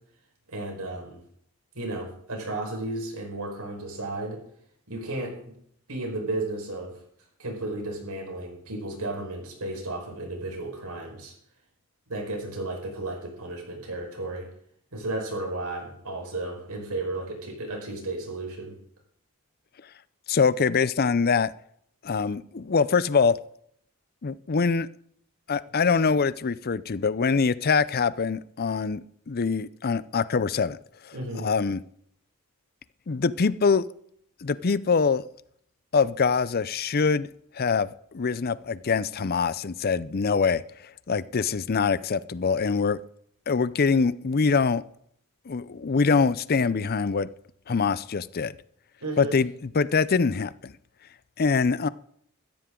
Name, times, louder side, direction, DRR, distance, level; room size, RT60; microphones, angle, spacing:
voice 1, 0.5-1.2 1.7-4.4 4.9-5.5 5.9-7.0 7.4-11.3 12.1-14.5 14.9-18.8 31.1-31.5 49.0-49.4, right 2 dB, 80° right, 2 dB, 4.9 m, -33 dB
voice 2, 20.3-21.5 22.0-23.3 24.2-24.9 25.5-30.8 31.0-31.8 33.1-33.8 34.4-35.3 35.9-37.3 37.5-40.6 41.1-43.0 43.5-44.8 45.5-47.3 47.7-48.5 49.2-50.7 51.4-51.9, left 5 dB, 45° left, 17 dB, 0.5 m, -24 dB
15.0 x 13.5 x 3.8 m, 0.66 s
head